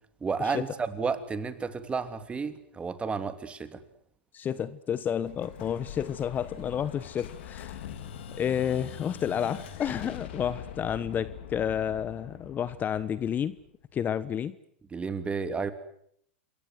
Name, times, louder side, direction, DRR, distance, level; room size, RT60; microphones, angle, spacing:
voice 1, 0.2-3.8 14.9-15.7, right 5 dB, 20° right, 3.0 m, -32 dB
voice 2, 4.3-7.9 8.4-13.5 13.9-14.5, left 9 dB, 30° left, 1.1 m, -30 dB
Explosion, 5.3-13.9, left 10 dB, 65° left, 3.6 m, -43 dB
28.0 x 22.5 x 7.7 m
hypercardioid pair, 105°, 6 cm